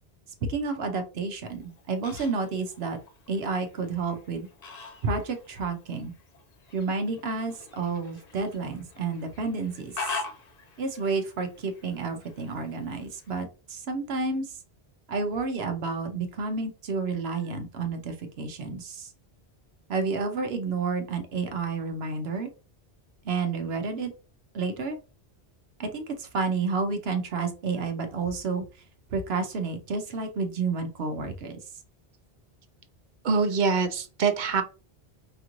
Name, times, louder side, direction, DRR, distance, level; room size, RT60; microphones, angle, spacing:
voice 1, 0.5-3.0 3.3-4.5 5.0-6.1 6.7-10.2 10.8-14.6 15.1-19.1 19.9-22.5 23.2-24.1 24.5-25.0 25.8-28.6 29.1-31.6, right 4 dB, 75° right, 6 dB, 0.9 m, -30 dB
Fowl, 1.5-13.4, left 4 dB, 45° left, 0.7 m, -43 dB
voice 2, 33.2-34.6, right 5 dB, 55° right, 8 dB, 0.6 m, -24 dB
5.0 x 2.5 x 2.9 m, 0.34 s
omnidirectional pair, 1.1 m